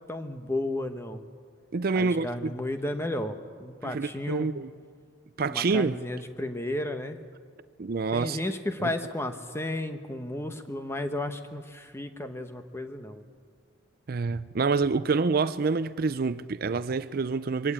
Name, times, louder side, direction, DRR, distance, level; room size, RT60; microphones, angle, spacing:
voice 1, 0.1-1.2 1.9-4.5 5.4-7.2 8.1-13.2, left 1 dB, 15° left, 1.0 m, -33 dB
voice 2, 1.7-2.5 3.8-4.7 5.4-6.0 7.8-8.4 8.8-8.9 14.1-17.7, right 4 dB, 50° right, 0.5 m, -27 dB
22.5 x 17.0 x 8.8 m
head